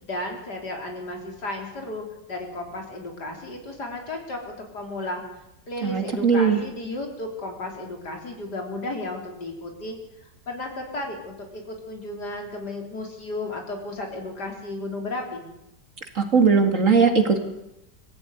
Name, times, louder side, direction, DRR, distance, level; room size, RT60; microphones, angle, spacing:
voice 1, 0.0-5.2 5.7-10.0 10.5-15.5, left 2 dB, 70° left, 2 dB, 4.5 m, -34 dB
voice 2, 5.8-6.6 16.1-17.4, right 5 dB, 45° right, 5 dB, 2.7 m, -19 dB
22.5 x 15.0 x 9.6 m, 0.87 s
omnidirectional pair, 1.8 m